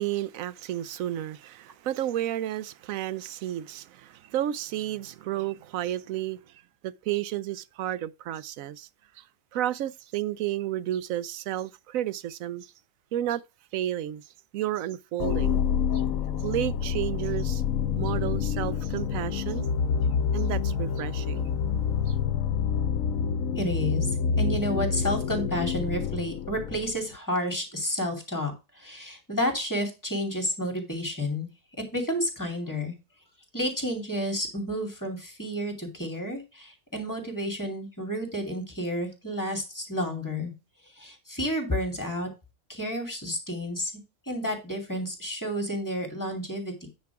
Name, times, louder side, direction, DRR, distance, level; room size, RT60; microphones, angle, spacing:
voice 1, 0.0-6.5 6.8-8.9 9.2-9.3 9.5-12.7 13.1-13.4 13.7-14.2 14.5-15.6 15.9-16.0 16.4-17.6 18.0-19.7 20.3-21.4 22.1-22.2, right 12 dB, 85° right, 1.0 m, -32 dB
sound 1, 15.2-27.1, left 7 dB, 80° left, 1.0 m, -27 dB
voice 2, 23.6-31.5 31.9-32.9 33.5-40.5 40.9-42.3 42.7-43.9 44.3-46.9, equal, 15° left, 2.6 m, -31 dB
9.4 x 4.6 x 4.6 m
omnidirectional pair, 1.4 m